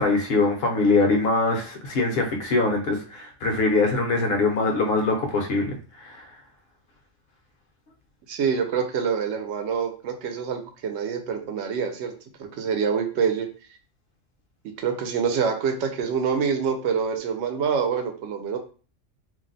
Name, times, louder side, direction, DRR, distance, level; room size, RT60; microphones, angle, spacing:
voice 1, 0.0-6.3, left 3 dB, 55° left, 2 dB, 1.0 m, -23 dB
voice 2, 8.3-12.1 12.4-13.5 14.8-18.6, right 6 dB, 70° right, 6 dB, 0.9 m, -26 dB
2.6 x 2.1 x 3.9 m, 0.38 s
omnidirectional pair, 1.3 m